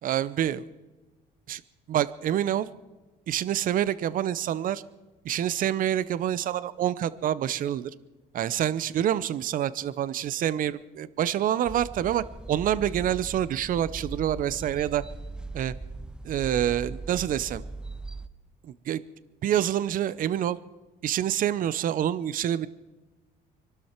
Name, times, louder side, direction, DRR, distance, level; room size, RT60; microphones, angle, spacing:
voice 1, 0.0-0.7 1.5-1.6 1.9-2.7 3.3-4.8 5.2-7.9 8.3-15.0 15.5-15.7 16.2-17.6 18.6-19.0 19.4-20.6 21.0-22.7, right 11 dB, 55° right, 18 dB, 0.6 m, -27 dB
sound 1, 11.6-18.3, right 3 dB, 5° right, 0.5 m, -39 dB
25.0 x 12.5 x 4.4 m, 1.1 s
cardioid pair, 110°, 17 cm